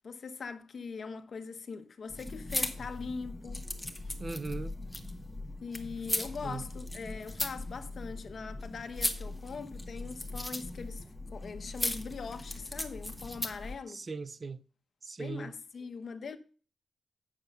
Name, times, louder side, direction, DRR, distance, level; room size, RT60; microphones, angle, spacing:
voice 1, 0.0-3.7 5.6-11.0 11.3-14.0 15.2-16.4, left 5 dB, 55° left, 1.0 m, -41 dB
sound 1, 2.1-13.7, left 1 dB, 5° left, 1.2 m, -38 dB
voice 2, 4.2-4.8 6.4-6.7 13.9-14.6 15.0-15.5, right 4 dB, 35° right, 0.4 m, -39 dB
8.7 x 6.8 x 5.4 m
wide cardioid pair, 125°, 0 cm